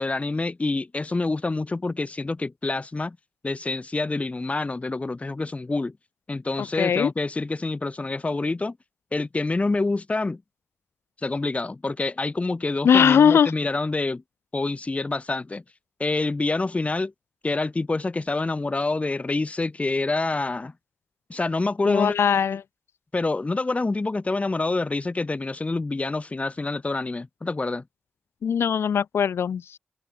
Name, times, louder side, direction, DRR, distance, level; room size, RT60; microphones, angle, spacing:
voice 1, 0.0-3.2 3.4-5.9 6.3-8.8 9.1-10.4 11.2-14.2 14.5-15.6 16.0-17.1 17.4-20.7 21.3-22.1 23.1-27.8, left 3 dB, 30° left, 1.3 m, -27 dB
voice 2, 6.6-7.1 12.8-13.5 21.9-22.6 28.4-29.8, left 7 dB, 70° left, 0.4 m, -20 dB
cardioid pair, 55°, 4 cm